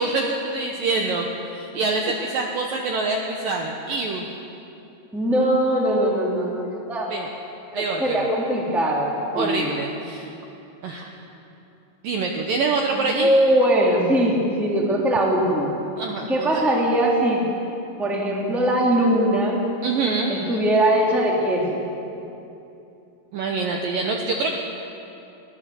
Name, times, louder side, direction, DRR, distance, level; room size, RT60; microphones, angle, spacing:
voice 1, 0.0-4.3 7.1-7.3 7.7-8.3 9.4-10.3 10.8-11.1 12.0-13.3 16.0-16.7 19.8-20.5 23.3-24.6, right 3 dB, 70° right, 1 dB, 2.3 m, -25 dB
voice 2, 5.1-7.1 7.7-9.7 12.9-15.7 16.3-17.4 18.0-19.6 20.3-21.8, right 1 dB, ahead, -2 dB, 1.8 m, -21 dB
21.0 x 17.5 x 7.1 m, 2.8 s
omnidirectional pair, 5.2 m